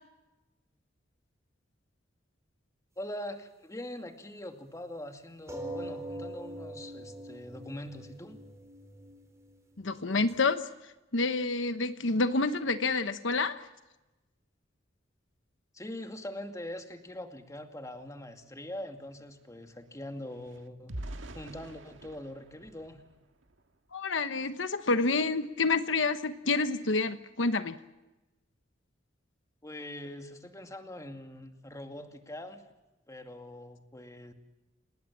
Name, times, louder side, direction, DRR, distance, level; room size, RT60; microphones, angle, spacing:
voice 1, 3.0-8.4 15.7-21.0 21.3-23.0 29.6-32.6 33.1-34.3, left 1 dB, 15° left, 5 dB, 2.4 m, -43 dB
sound 1, 5.5-10.5, right 1 dB, 15° right, 4.4 m, -43 dB
voice 2, 9.8-10.7 11.1-13.7 23.9-27.7, left 3 dB, 75° left, 10 dB, 1.1 m, -28 dB
sound 2, 17.9-18.0 18.3-23.8 24.3-24.5 24.9-25.1, right 1 dB, 90° right, 1.7 m, -47 dB
29.5 x 19.5 x 7.4 m, 1.1 s
head